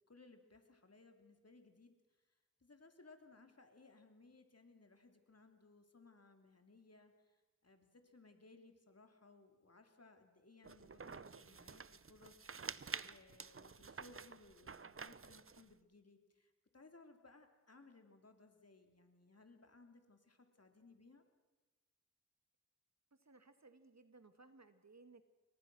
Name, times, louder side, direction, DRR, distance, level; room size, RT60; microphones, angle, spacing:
voice 1, 0.1-1.9 2.6-12.7 13.0-21.2, left 3 dB, 55° left, 5 dB, 3.3 m, -63 dB
sound 1, 10.6-15.7, right 5 dB, 45° right, 0.8 m, -50 dB
voice 2, 23.1-25.2, right 3 dB, 60° right, 9 dB, 2.1 m, -62 dB
29.0 x 23.0 x 6.3 m, 1.3 s
wide cardioid pair, 55°, 31 cm